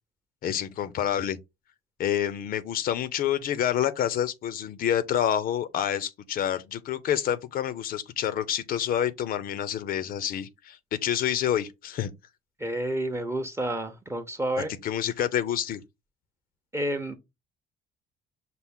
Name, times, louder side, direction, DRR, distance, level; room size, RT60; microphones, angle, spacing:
voice 1, 0.4-1.4 2.0-12.1 14.8-15.8, left 10 dB, 60° left, 0.5 m, -28 dB
voice 2, 12.6-14.7 16.7-17.2, right 1 dB, 15° right, 0.7 m, -30 dB
5.8 x 2.0 x 3.5 m
cardioid pair, 110°, 17 cm